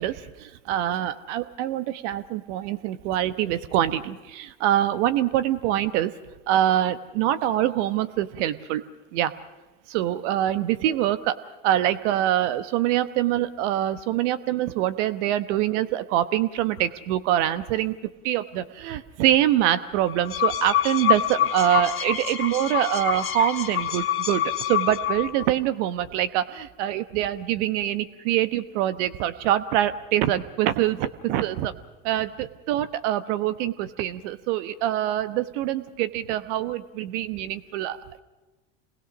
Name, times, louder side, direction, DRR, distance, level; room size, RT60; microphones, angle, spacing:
voice 1, 0.0-6.1 6.5-8.8 9.1-9.3 9.9-11.4 11.6-18.0 18.2-31.7 32.0-38.2, right 12 dB, 70° right, 12 dB, 1.2 m, -25 dB
sound 1, 20.1-25.5, left 10 dB, 35° left, 2.2 m, -26 dB
27.0 x 20.5 x 6.2 m, 1.1 s
hypercardioid pair, 80°, 37 cm